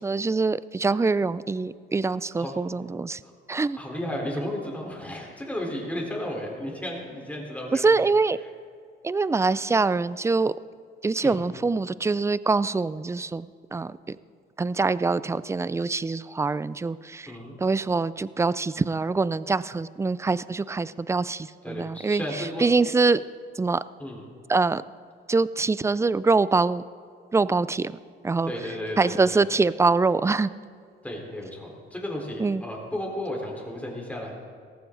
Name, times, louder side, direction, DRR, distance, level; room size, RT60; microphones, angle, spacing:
voice 1, 0.0-3.2 3.5-3.8 7.8-8.4 9.0-10.5 11.0-14.2 14.6-17.3 17.6-22.2 22.6-23.2 23.6-23.8 24.5-24.8 25.3-26.8 27.3-28.0 28.2-28.5 29.0-30.5 32.4-32.6, right 3 dB, 15° right, 17 dB, 0.4 m, -24 dB
voice 2, 3.7-7.9 8.4-8.5 11.2-11.4 17.3-17.6 21.6-22.7 24.0-24.2 28.4-29.6 31.0-34.3, left 1 dB, 5° left, -1 dB, 3.9 m, -34 dB
17.5 x 15.0 x 3.9 m, 2.1 s
cardioid pair, 90°, 20 cm